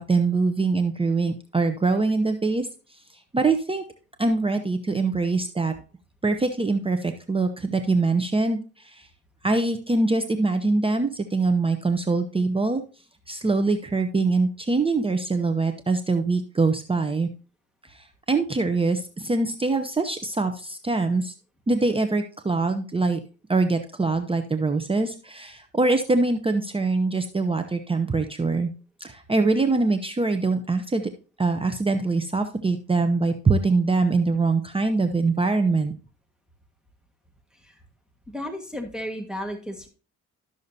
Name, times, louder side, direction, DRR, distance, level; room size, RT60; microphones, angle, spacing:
voice 1, 0.0-2.7 3.3-3.8 4.2-5.7 6.2-9.1 9.4-12.8 13.3-17.3 17.9-21.3 21.7-23.2 23.5-28.7 29.0-31.0 31.4-35.9, right 3 dB, 20° right, 7 dB, 0.8 m, -23 dB
voice 2, 38.3-39.9, equal, ahead, 2 dB, 1.6 m, -33 dB
12.5 x 6.4 x 2.7 m, 0.36 s
cardioid pair, 90°, 30 cm